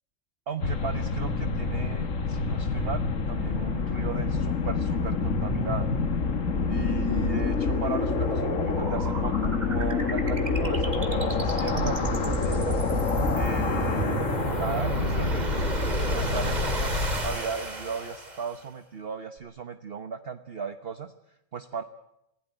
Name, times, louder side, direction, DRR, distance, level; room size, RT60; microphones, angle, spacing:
voice 1, 0.5-5.9 6.7-12.8 13.3-15.5 15.9-21.1 21.5-21.8, right 6 dB, 45° right, 10 dB, 1.2 m, -36 dB
sound 1, 0.6-17.4, left 4 dB, 65° left, 2.0 m, -27 dB
sound 2, 5.2-18.6, right 2 dB, 30° right, 2.3 m, -32 dB
27.5 x 16.0 x 9.1 m, 0.84 s
omnidirectional pair, 1.5 m